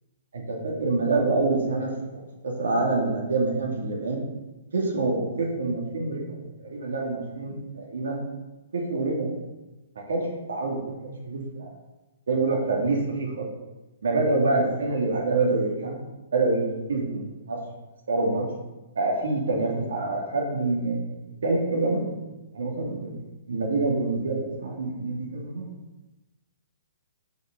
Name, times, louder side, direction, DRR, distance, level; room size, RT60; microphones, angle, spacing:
voice 1, 0.3-4.2 4.7-8.2 8.7-9.3 10.1-11.7 12.3-13.5 14.0-16.0 16.3-17.6 18.1-18.4 19.0-21.0 21.4-22.2 22.5-23.1 23.5-25.7, right 3 dB, 85° right, -2 dB, 2.4 m, -26 dB
6.6 x 6.1 x 6.6 m, 1.1 s
hypercardioid pair, 175°, 0 cm